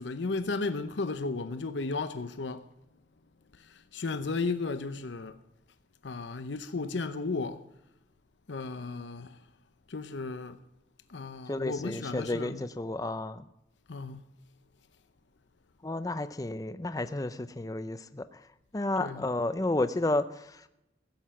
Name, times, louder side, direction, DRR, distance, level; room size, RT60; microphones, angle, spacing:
voice 1, 0.0-2.6 3.9-5.4 6.0-7.6 8.5-9.4 9.9-10.6 11.1-12.6 13.9-14.2 19.0-19.3, left 3 dB, 85° left, 0.7 m, -34 dB
voice 2, 11.5-13.5 15.8-18.4 18.7-20.7, left 2 dB, 20° left, 0.5 m, -32 dB
15.5 x 7.9 x 7.4 m
head